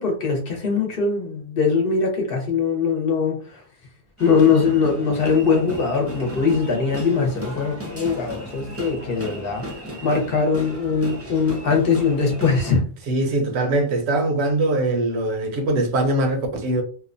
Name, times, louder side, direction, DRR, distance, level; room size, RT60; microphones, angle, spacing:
voice 1, 0.0-3.6 4.2-9.7 10.0-12.8, left 5 dB, 60° left, 0.9 m, -21 dB
sound 1, 4.2-12.8, equal, 15° right, 0.6 m, -36 dB
voice 2, 13.1-16.8, right 2 dB, 75° right, 0.9 m, -22 dB
2.7 x 2.1 x 2.5 m
omnidirectional pair, 1.1 m